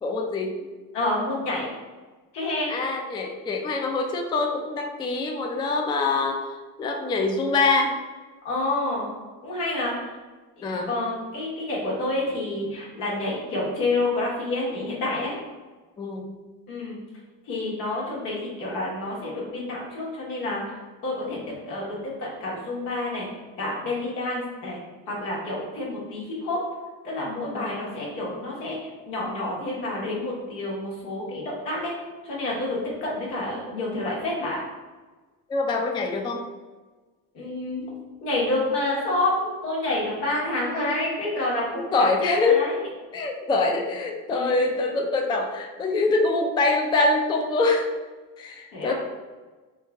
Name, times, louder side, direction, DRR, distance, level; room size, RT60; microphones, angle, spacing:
voice 1, 0.0-0.5 2.7-6.5 6.8-7.9 10.6-10.9 16.0-16.3 27.5-27.8 35.5-36.4 41.7-42.6 43.1-47.9 48.4-48.9, left 3 dB, 10° left, 2 dB, 0.3 m, -24 dB
voice 2, 0.9-1.7 2.3-2.7 8.4-9.1 9.4-9.9 10.6-15.4 16.7-17.0 17.5-21.4 21.7-23.3 23.6-24.8 25.1-26.6 27.0-28.8 29.1-31.9 32.2-34.6 37.3-37.9 38.2-41.9 42.2-42.9 44.3-44.6 48.7-48.9, left 2 dB, 85° left, -4 dB, 1.2 m, -28 dB
3.1 x 2.3 x 3.4 m, 1.3 s
hypercardioid pair, 60°, 49 cm